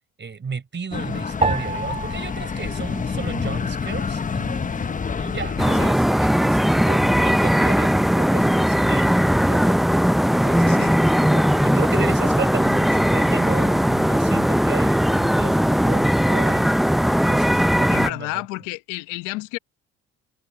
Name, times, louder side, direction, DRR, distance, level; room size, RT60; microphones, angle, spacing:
voice 1, 0.2-9.8 10.3-10.9 11.2-16.7 17.3-18.4, right 6 dB, 35° right, 4.4 m, -34 dB
sound 1, 0.9-5.9, left 5 dB, 25° left, 0.9 m, -27 dB
sound 2, 1.4-3.9 4.2-5.1 5.7-6.1, right 2 dB, 20° right, 3.4 m, -30 dB
sound 3, 5.6-18.1, equal, ahead, 0.4 m, -19 dB
voice 2, 17.9-19.6, left 21 dB, 90° left, 1.2 m, -30 dB
supercardioid pair, 70°, 30 cm